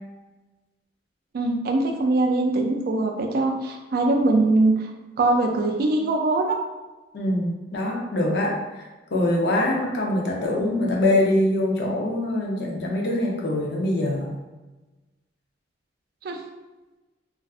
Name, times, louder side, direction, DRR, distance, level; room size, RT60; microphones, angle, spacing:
voice 1, 1.3-4.9 5.2-6.6 16.2-16.4, right 2 dB, 55° right, 3 dB, 0.3 m, -22 dB
voice 2, 7.1-8.8 9.1-14.3, left 1 dB, 60° left, -1 dB, 0.5 m, -24 dB
2.4 x 2.3 x 2.3 m, 1.1 s
head